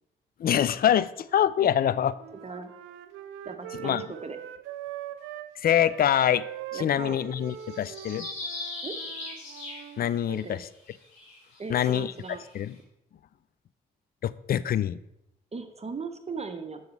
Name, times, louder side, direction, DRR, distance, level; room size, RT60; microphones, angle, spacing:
voice 1, 0.4-2.1 3.8-4.1 5.6-6.5 6.7-8.3 10.0-10.7 11.7-12.1 12.5-12.7 14.2-15.0, left 10 dB, 45° left, 17 dB, 0.4 m, -25 dB
Wind instrument woodwind instrument, 1.6-5.5 5.8-10.1, right 11 dB, 75° right, 0.5 m, -42 dB
voice 2, 3.4-4.4 6.7-7.2 8.8-9.0 10.3-10.6 11.6-12.4 15.5-16.8, right 4 dB, 30° right, 7 dB, 0.9 m, -38 dB
sound 1, 7.5-10.4 11.0-12.5, left 2 dB, 85° left, 2.0 m, -39 dB
6.9 x 6.2 x 3.2 m, 0.83 s
hypercardioid pair, 45°, 21 cm